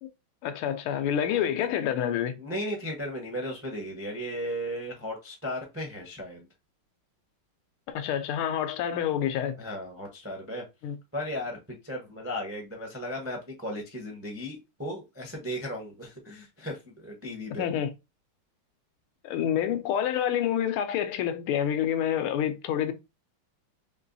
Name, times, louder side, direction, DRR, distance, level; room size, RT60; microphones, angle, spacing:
voice 1, 0.4-2.4 7.9-9.6 10.8-10.9 17.6-17.9 19.2-22.9, left 9 dB, 90° left, 1.5 m, -28 dB
voice 2, 2.4-6.5 9.6-10.6 11.1-17.7, equal, 20° right, 0.3 m, -36 dB
4.4 x 3.0 x 2.6 m
omnidirectional pair, 2.3 m